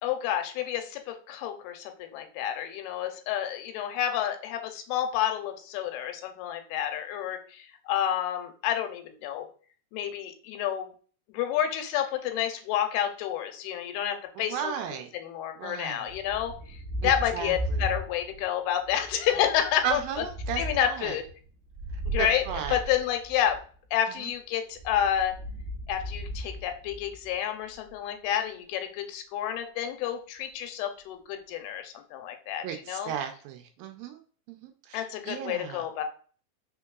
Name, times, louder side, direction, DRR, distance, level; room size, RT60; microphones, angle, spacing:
voice 1, 0.0-9.5 9.9-10.9 11.3-14.7 15.1-20.0 20.6-21.3 22.1-23.6 23.9-25.4 25.9-33.1 34.9-36.0, left 10 dB, 90° left, 6 dB, 2.6 m, -29 dB
voice 2, 14.5-15.1 15.6-16.1 17.0-17.8 19.8-21.2 22.2-22.8 24.2-24.3 32.6-34.2 34.5-35.8, right 8 dB, 80° right, 6 dB, 2.2 m, -35 dB
Thunder, 16.1-18.5 18.8-23.6 24.7-27.3, equal, 15° right, 1.4 m, -36 dB
5.2 x 3.8 x 2.3 m, 0.42 s
omnidirectional pair, 4.4 m